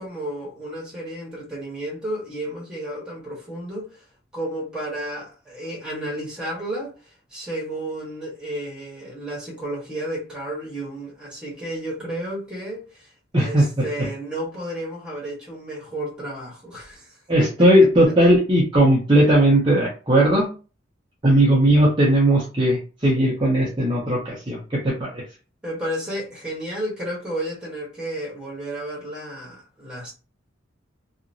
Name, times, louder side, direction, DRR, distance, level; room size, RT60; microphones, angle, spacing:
voice 1, 0.0-4.0 4.3-6.9 7.3-13.1 13.3-18.1 25.6-30.1, right 1 dB, 5° right, 1.2 m, -32 dB
voice 2, 13.3-13.8 17.3-20.5 21.2-25.2, right 1 dB, 25° right, 0.7 m, -18 dB
2.9 x 2.5 x 2.6 m
head